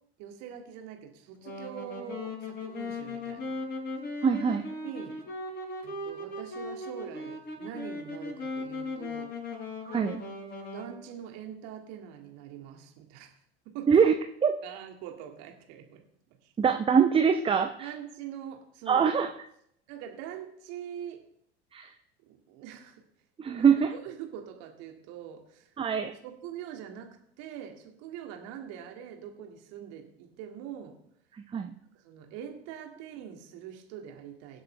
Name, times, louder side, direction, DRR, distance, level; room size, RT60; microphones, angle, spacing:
voice 1, 0.2-3.5 4.8-5.2 5.8-9.3 10.7-13.3 13.7-14.0 14.6-16.0 16.4-16.5 17.8-19.1 19.9-21.2 22.3-23.0 23.4-25.7 26.2-30.9 31.9-34.6, right 9 dB, 50° right, 3 dB, 2.3 m, -43 dB
Wind instrument woodwind instrument, 1.4-10.9, left 2 dB, 30° left, 6.2 m, -38 dB
voice 2, 4.2-4.6 9.8-10.2 13.9-14.1 14.4-14.5 16.6-17.9 18.9-19.3 21.7-21.9 23.4-23.9 25.8-26.1 31.3-31.7, right 6 dB, 15° right, 7 dB, 0.8 m, -23 dB
23.5 x 7.9 x 3.4 m, 0.71 s
figure-of-eight pair, 80°, 33 cm